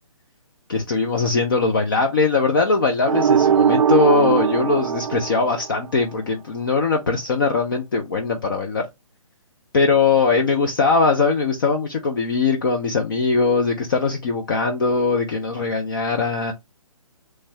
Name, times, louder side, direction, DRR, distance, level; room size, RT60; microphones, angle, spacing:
voice 1, 0.7-8.8 9.7-16.5, left 4 dB, 35° left, 0.7 m, -20 dB
sound 1, 3.1-6.0, right 8 dB, 60° right, 0.5 m, -20 dB
7.1 x 3.2 x 2.3 m
hypercardioid pair, 165°, 18 cm